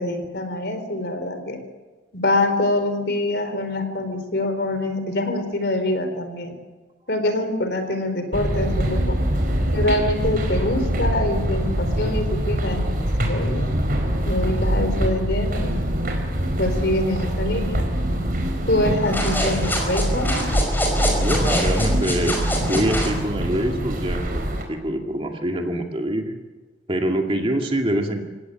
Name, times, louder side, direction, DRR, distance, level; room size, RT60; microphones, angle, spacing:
voice 1, 0.0-1.6 2.1-6.6 7.1-9.3 9.7-13.8 14.3-15.8 16.6-17.9 18.7-20.4, left 1 dB, 60° left, 8 dB, 3.9 m, -25 dB
sound 1, 8.3-24.6, equal, 50° right, 4.4 m, -24 dB
sound 2, 19.0-23.2, equal, 10° left, 5.4 m, -25 dB
voice 2, 21.2-22.4 22.7-26.3 26.9-28.2, right 1 dB, 30° right, 2 dB, 2.3 m, -24 dB
28.0 x 17.0 x 9.3 m, 1.3 s
head